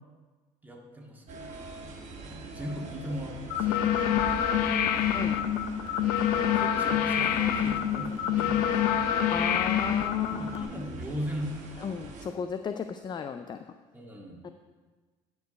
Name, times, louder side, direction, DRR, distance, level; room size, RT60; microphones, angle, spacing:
voice 1, 0.6-1.5 1.8-5.2 6.3-9.1 10.2-11.9 13.9-14.4, equal, 10° right, -1 dB, 1.8 m, -40 dB
sound 1, 1.3-12.3, right 3 dB, 50° right, 1.7 m, -44 dB
sound 2, 3.5-10.6, left 9 dB, 75° left, 0.6 m, -26 dB
voice 2, 5.1-5.4 9.3-10.7 11.8-13.6 14.4-14.5, left 6 dB, 30° left, 8 dB, 0.4 m, -34 dB
10.5 x 4.7 x 5.1 m, 1.4 s
supercardioid pair, 85°, 16 cm